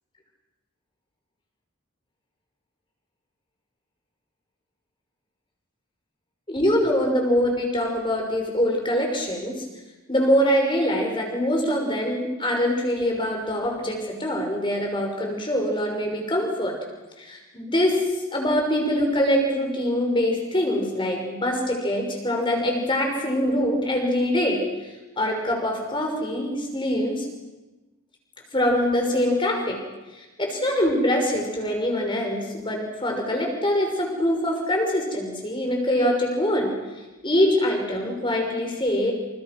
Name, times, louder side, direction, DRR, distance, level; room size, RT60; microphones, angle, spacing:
voice 1, 6.5-9.6 10.1-16.8 17.2-27.3 28.5-29.8 30.1-36.8 37.2-39.1, equal, 20° left, 2 dB, 5.9 m, -24 dB
29.0 x 28.5 x 6.2 m, 1.1 s
head